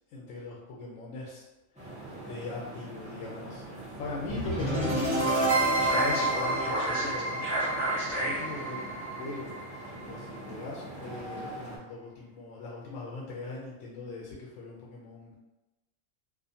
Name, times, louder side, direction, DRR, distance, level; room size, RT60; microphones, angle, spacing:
voice 1, 0.1-1.4 1.8-1.9 2.2-5.3 5.7-7.4 7.9-8.9 9.2-9.5 10.0-15.3, left 2 dB, 85° left, -3 dB, 1.0 m, -40 dB
sound 1, 1.7-11.8, right 1 dB, 5° right, 0.7 m, -43 dB
sound 2, 4.3-10.4, right 1 dB, 10° left, 1.3 m, -28 dB
2.4 x 2.4 x 2.7 m, 1.0 s
omnidirectional pair, 1.3 m